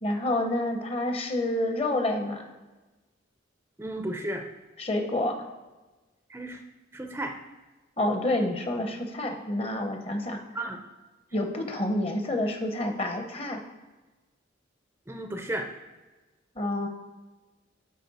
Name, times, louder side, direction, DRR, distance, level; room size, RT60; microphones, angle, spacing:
voice 1, 0.0-2.5 4.8-5.4 8.0-10.4 11.3-13.6 16.6-16.9, left 1 dB, 30° left, 5 dB, 0.8 m, -28 dB
voice 2, 3.8-4.4 6.3-6.6 6.9-7.3 10.5-10.8 15.1-15.7, right 1 dB, 10° right, 4 dB, 0.5 m, -33 dB
11.0 x 4.2 x 4.1 m, 1.2 s
head